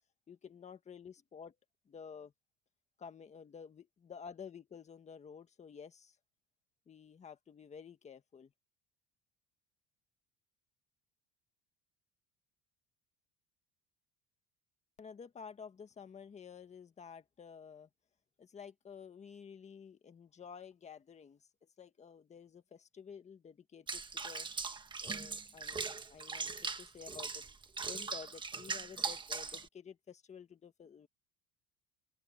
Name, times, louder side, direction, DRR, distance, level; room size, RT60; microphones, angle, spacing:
voice 1, 0.3-1.6 1.8-2.3 3.0-6.2 6.9-8.5 15.0-17.9 18.4-24.5 25.0-27.4 27.8-31.1, left 6 dB, 20° left, 1.6 m, -52 dB
Water / Bathtub (filling or washing), 23.9-29.7, right 4 dB, 15° right, 1.4 m, -40 dB
open air
cardioid pair, 155°, 31 cm